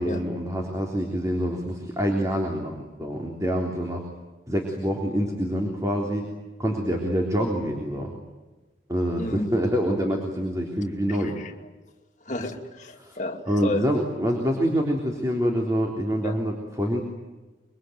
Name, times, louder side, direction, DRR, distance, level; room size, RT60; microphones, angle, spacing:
voice 1, 0.0-4.1 4.5-6.3 6.6-8.1 8.9-11.4 13.0-13.2 13.4-17.0, equal, 15° right, 1 dB, 3.5 m, -26 dB
voice 2, 9.2-9.5 11.1-11.5 12.3-13.9 16.2-16.4, left 1 dB, 40° left, 4 dB, 2.6 m, -32 dB
26.0 x 23.5 x 9.3 m, 1.2 s
head